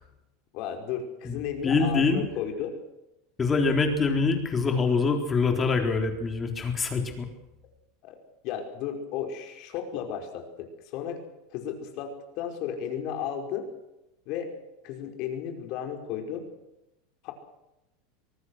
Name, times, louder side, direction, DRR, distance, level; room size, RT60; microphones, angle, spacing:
voice 1, 0.5-2.7 8.0-8.2 8.4-11.2 11.5-13.7 14.3-14.5 14.8-16.5 17.2-17.3, left 8 dB, 50° left, 4 dB, 5.2 m, -34 dB
voice 2, 1.2-2.2 3.4-7.3, left 4 dB, 20° left, 4 dB, 3.9 m, -25 dB
24.5 x 19.0 x 6.5 m, 0.93 s
supercardioid pair, 140°, 0 cm